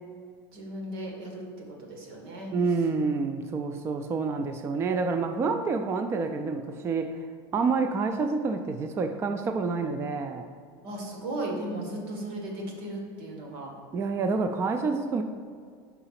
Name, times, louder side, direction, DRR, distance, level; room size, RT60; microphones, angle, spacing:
voice 1, 0.5-2.5 10.8-13.7, right 1 dB, 90° right, 0 dB, 1.7 m, -36 dB
voice 2, 2.5-7.2 7.5-10.5 13.9-15.2, right 4 dB, 20° right, 7 dB, 0.3 m, -28 dB
5.6 x 4.8 x 5.8 m, 2.1 s
supercardioid pair, 145°, 12 cm